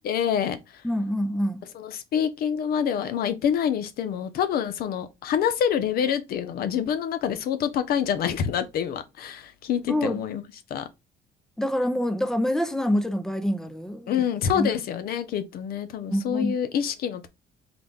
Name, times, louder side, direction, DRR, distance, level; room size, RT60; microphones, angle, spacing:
voice 1, 0.0-0.8 1.7-10.4 10.7-10.9 14.1-17.3, left 8 dB, 65° left, 0.7 m, -26 dB
voice 2, 0.8-1.6 9.9-10.2 11.6-14.3 14.5-14.7 16.1-16.5, equal, 5° left, 0.5 m, -26 dB
3.9 x 2.2 x 3.4 m
cardioid pair, 110°, 17 cm